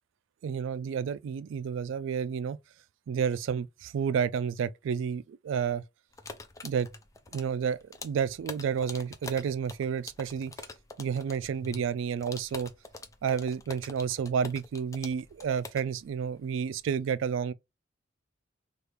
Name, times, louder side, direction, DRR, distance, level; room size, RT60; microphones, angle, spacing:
voice 1, 0.4-2.6 3.1-5.8 6.6-6.9 7.3-10.5 11.0-12.7 13.2-17.5, right 7 dB, 70° right, 0.3 m, -30 dB
sound 1, 6.1-17.0, left 3 dB, 15° left, 0.4 m, -45 dB
3.2 x 2.4 x 3.1 m
head